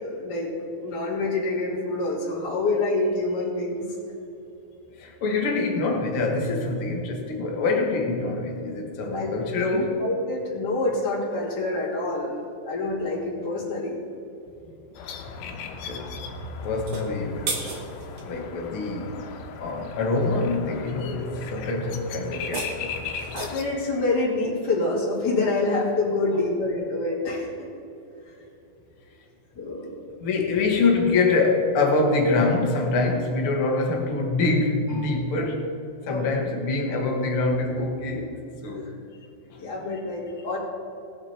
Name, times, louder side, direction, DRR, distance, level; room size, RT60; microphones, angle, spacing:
voice 1, 0.0-3.9 9.1-9.3 9.6-14.0 23.3-27.5 28.2-28.4 29.6-30.0 36.1-36.3 38.8-38.9 39.6-40.6, left 2 dB, 30° left, -8 dB, 2.7 m, -27 dB
voice 2, 5.0-10.0 15.4-16.3 16.6-17.8 18.2-19.2 19.6-23.0 26.3-26.4 30.2-35.7 36.1-38.9 39.5-39.7, left 3 dB, 55° left, 1 dB, 1.5 m, -25 dB
sound 1, 15.0-23.7, left 5 dB, 80° left, 2.8 m, -38 dB
sound 2, 16.7-18.3 22.3-23.8, right 4 dB, 85° right, 1.2 m, -35 dB
19.0 x 7.3 x 4.4 m, 2.8 s
omnidirectional pair, 4.7 m